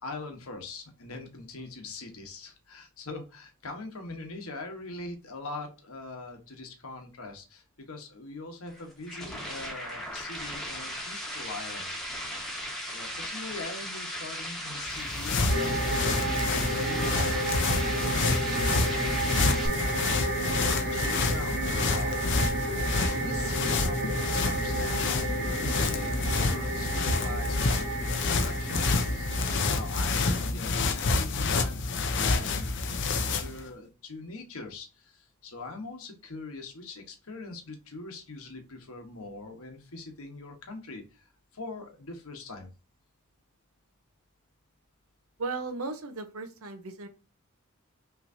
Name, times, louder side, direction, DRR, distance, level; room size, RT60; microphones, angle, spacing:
voice 1, 0.0-11.9 12.9-22.1 22.7-42.7, left 3 dB, 75° left, 3 dB, 1.2 m, -42 dB
sound 1, 8.7-19.7, equal, ahead, 1.2 m, -37 dB
sound 2, 14.9-33.6, left 3 dB, 55° left, 0.6 m, -28 dB
sound 3, 15.5-30.5, right 1 dB, 45° right, 1.0 m, -32 dB
voice 2, 45.4-47.1, right 3 dB, 75° right, 8 dB, 0.8 m, -36 dB
5.8 x 3.2 x 2.7 m, 0.31 s
head